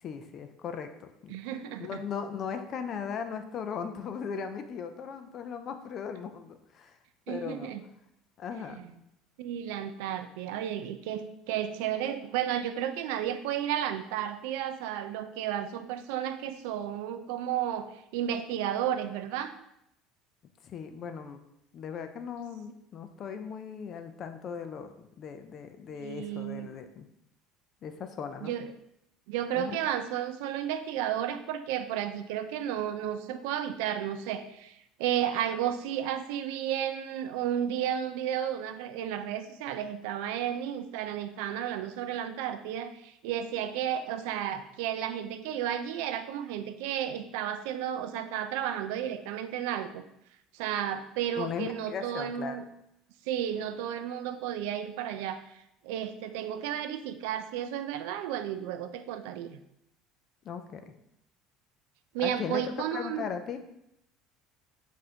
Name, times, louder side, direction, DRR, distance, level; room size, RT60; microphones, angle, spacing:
voice 1, 0.0-1.4 1.8-7.0 7.3-7.7 8.4-8.8 20.6-21.4 21.7-27.1 27.8-28.5 29.5-29.9 51.4-52.6 60.4-60.8 62.2-62.6 62.9-63.6, left 7 dB, 30° left, 8 dB, 0.3 m, -38 dB
voice 2, 1.3-2.0 7.3-7.8 8.7-8.9 9.4-19.5 26.0-26.7 28.4-28.7 29.3-50.0 50.5-52.6 53.3-55.4 55.8-59.6 62.1-63.2, right 10 dB, 80° right, 9 dB, 0.3 m, -33 dB
6.0 x 2.6 x 2.8 m, 0.79 s
cardioid pair, 175°, 0 cm